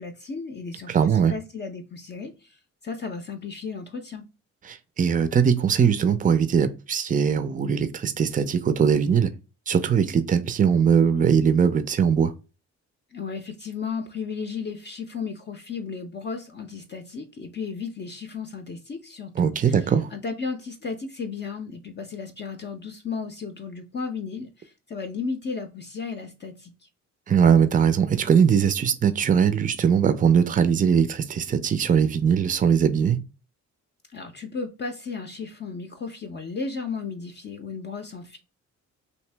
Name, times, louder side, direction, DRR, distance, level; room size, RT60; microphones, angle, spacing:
voice 1, 0.0-4.2 13.1-26.9 34.1-38.4, left 5 dB, 35° left, 0.6 m, -34 dB
voice 2, 0.9-1.3 4.7-9.3 9.7-12.3 19.4-20.1 27.3-33.2, right 7 dB, 25° right, 0.5 m, -21 dB
2.9 x 2.6 x 3.3 m
cardioid pair, 90°, 30 cm